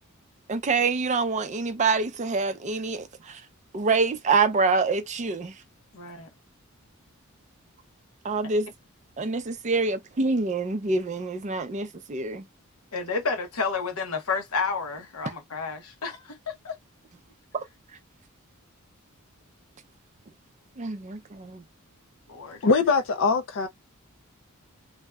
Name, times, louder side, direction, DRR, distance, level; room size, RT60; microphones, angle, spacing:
voice 1, 0.5-3.4 3.7-5.6 8.2-8.7 9.2-12.5 17.5-17.6 20.8-21.6, right 4 dB, 35° right, 0.4 m, -26 dB
voice 2, 5.9-6.3 12.9-16.8 22.3-22.7, left 4 dB, 75° left, 0.9 m, -31 dB
voice 3, 22.6-23.7, left 4 dB, 60° left, 0.4 m, -22 dB
2.6 x 2.2 x 2.2 m
head